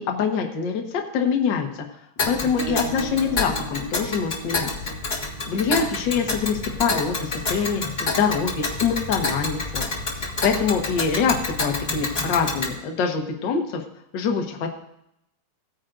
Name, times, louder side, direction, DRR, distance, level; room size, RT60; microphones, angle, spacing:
voice 1, 0.0-1.7 2.2-4.7 5.5-9.8 10.2-13.8 14.1-14.7, left 6 dB, 50° left, 2 dB, 1.4 m, -24 dB
Tick, 2.2-12.7, left 3 dB, 30° left, 1.3 m, -28 dB
Acoustic guitar / Strum, 2.6-7.8, right 5 dB, 85° right, 2.7 m, -38 dB
17.5 x 9.4 x 2.5 m, 0.79 s
omnidirectional pair, 3.5 m